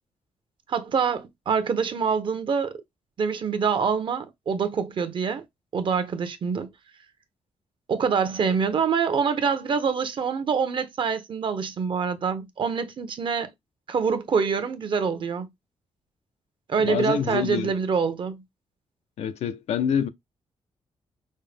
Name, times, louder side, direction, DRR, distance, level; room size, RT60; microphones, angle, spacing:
voice 1, 0.7-2.8 3.2-5.4 5.7-6.7 7.9-13.5 13.9-15.5 16.7-18.4, right 6 dB, 50° right, 0.8 m, -25 dB
voice 2, 16.8-17.7 19.2-20.1, left 8 dB, 90° left, 0.5 m, -26 dB
5.4 x 2.1 x 3.3 m
cardioid pair, 120°, 11 cm